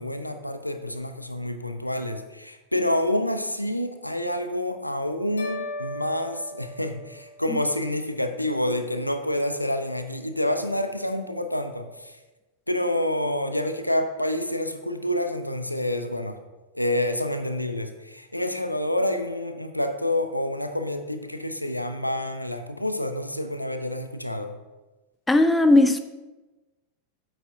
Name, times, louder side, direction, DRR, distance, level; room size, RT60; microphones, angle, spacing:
voice 1, 0.0-12.2 12.7-16.4 16.7-24.6, left 1 dB, 85° left, 8 dB, 0.6 m, -28 dB
sound 1, 5.4-7.7, left 1 dB, 70° left, 1.6 m, -37 dB
voice 2, 25.3-26.0, left 2 dB, 10° left, 9 dB, 0.5 m, -17 dB
9.0 x 8.2 x 2.7 m, 1.1 s
figure-of-eight pair, 90°, 0 cm